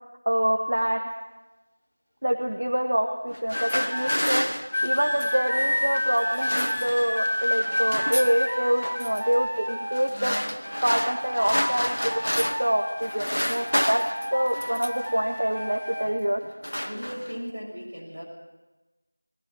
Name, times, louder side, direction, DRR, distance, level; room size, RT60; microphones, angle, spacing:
voice 1, 0.2-1.1 2.2-4.5 4.8-10.3 10.8-12.2 12.6-14.0 14.3-16.4, equal, 50° right, 3 dB, 1.6 m, -26 dB
sound 1, 3.3-5.5 6.2-7.2 7.5-8.4 8.8-9.2 9.9-12.7 13.0-15.1 15.9-16.1 16.4-17.5, equal, 90° left, 1.4 m, -30 dB
sound 2, 3.5-4.2 4.7-10.2 10.6-13.2 13.5-16.1 16.8-17.1, left 1 dB, 5° left, 2.0 m, -29 dB
voice 2, 16.8-18.2, equal, 25° right, -5 dB, 6.8 m, -37 dB
21.0 x 15.5 x 9.2 m, 1.1 s
figure-of-eight pair, 180°, 0 cm